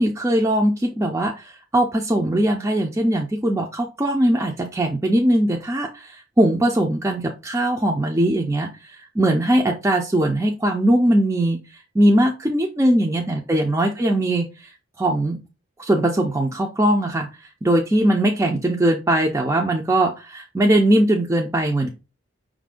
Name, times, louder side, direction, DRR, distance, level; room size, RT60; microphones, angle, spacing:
voice 1, 0.0-11.6 12.0-14.7 15.0-15.4 15.8-17.3 17.6-21.9, right 1 dB, 15° right, 0 dB, 0.4 m, -20 dB
5.5 x 2.5 x 3.6 m, 0.29 s
head